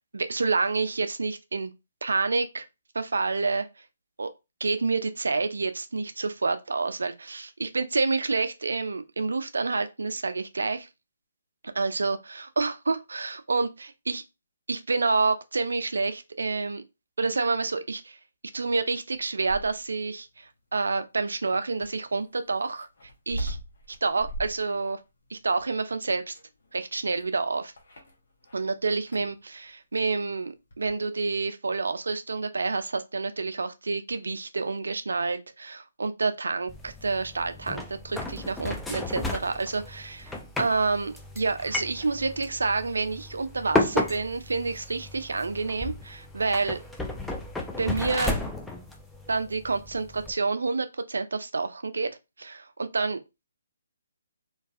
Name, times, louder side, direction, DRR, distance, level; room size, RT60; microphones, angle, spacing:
voice 1, 0.1-1.7 2.0-2.7 2.9-3.7 4.2-4.3 4.6-10.9 11.7-14.2 14.7-16.8 17.2-18.2 18.5-22.9 23.3-23.6 23.9-25.0 25.3-26.4 26.7-27.7 28.5-46.8 47.8-48.3 49.3-53.2, right 3 dB, 75° right, 0.3 m, -28 dB
sound 1, 19.1-20.0 21.8-28.7 29.0-29.4 30.7-31.0, right 1 dB, 65° left, 0.9 m, -40 dB
sound 2, 36.7-50.3, left 2 dB, 5° left, 0.3 m, -34 dB
2.4 x 2.2 x 2.4 m
figure-of-eight pair, 145°, 0 cm